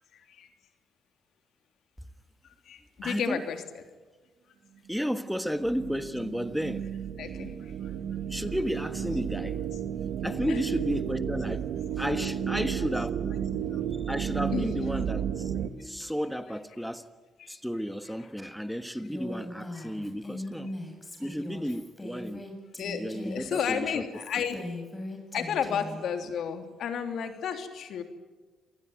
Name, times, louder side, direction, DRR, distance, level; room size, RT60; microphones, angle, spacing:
voice 1, 0.1-0.5 2.6-3.6 7.2-7.9 10.5-10.6 13.5-13.8 14.5-14.7 17.4-17.5 19.8-19.9 22.8-24.6 25.3-28.0, left 7 dB, 70° left, 3.1 m, -32 dB
voice 2, 3.0-3.4 4.9-6.9 8.3-9.6 10.2-11.7 11.9-13.1 14.0-15.5 15.8-17.1 17.5-20.7 21.2-22.5 23.0-24.0 24.3-24.4, equal, ahead, 1.4 m, -32 dB
sound 1, 5.6-15.7, right 9 dB, 75° right, 1.7 m, -33 dB
Female speech woman speaking, 19.0-26.0, left 1 dB, 20° left, 7.2 m, -40 dB
27.5 x 19.5 x 9.2 m
cardioid pair, 75°, 0 cm